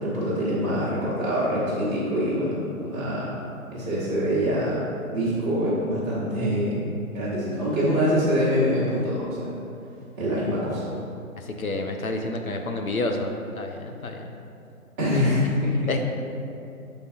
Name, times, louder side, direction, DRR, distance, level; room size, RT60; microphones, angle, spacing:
voice 1, 0.0-3.3 3.7-9.5 10.2-10.8 15.0-15.9, equal, 10° right, -10 dB, 0.9 m, -25 dB
voice 2, 11.4-14.3 15.9-16.0, left 2 dB, 75° left, 3 dB, 0.8 m, -29 dB
6.8 x 4.0 x 4.3 m, 2.6 s
figure-of-eight pair, 135°, 43 cm